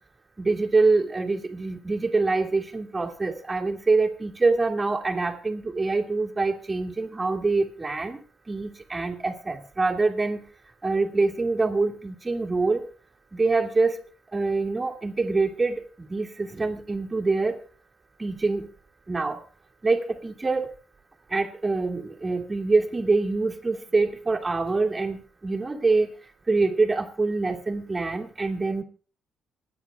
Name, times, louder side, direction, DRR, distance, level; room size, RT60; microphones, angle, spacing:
voice 1, 0.4-10.4 10.8-12.8 13.3-14.0 14.3-17.6 18.2-18.7 19.1-19.4 19.8-20.7 21.3-26.1 26.5-28.8, right 3 dB, 20° right, 2 dB, 2.5 m, -25 dB
26.5 x 9.9 x 2.4 m, 0.40 s
cardioid pair, 90°, 0 cm